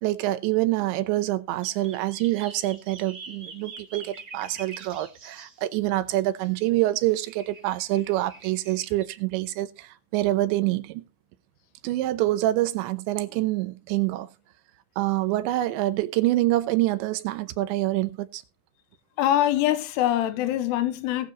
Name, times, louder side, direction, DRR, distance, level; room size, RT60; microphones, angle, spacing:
voice 1, 0.0-11.0 11.8-14.3 15.0-18.4, right 16 dB, 90° right, 3.1 m, -26 dB
sound 1, 1.6-5.6 6.8-6.9 7.2-9.1, right 4 dB, 65° right, 0.9 m, -45 dB
voice 2, 19.2-21.3, left 12 dB, 75° left, 3.1 m, -24 dB
20.0 x 6.8 x 3.0 m
omnidirectional pair, 5.1 m